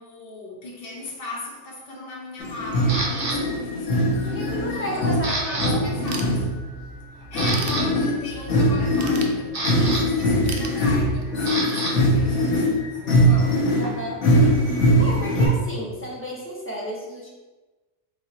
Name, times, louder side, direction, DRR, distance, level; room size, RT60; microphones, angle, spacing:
voice 1, 0.0-6.5 7.3-13.7, left 2 dB, 55° left, -3 dB, 1.1 m, -38 dB
sound 1, 2.4-6.8 7.2-15.5, equal, 85° left, 1.1 m, -21 dB
Camera, 2.9-3.4 4.0-4.3 4.6-5.7 6.0-6.2 6.7-6.8 7.2-7.8 9.0-11.9 12.2-14.8, right 2 dB, 45° right, 1.0 m, -30 dB
voice 2, 4.2-6.0 12.6-12.9 13.8-14.3 14.7-17.3, equal, 10° left, -4 dB, 0.8 m, -33 dB
Ratchet pawl / Tools, 6.1-6.9 7.2-8.4 8.9-9.9 10.5-11.4, right 5 dB, 70° right, 0.8 m, -36 dB
4.3 x 3.4 x 2.8 m, 1.2 s
omnidirectional pair, 1.2 m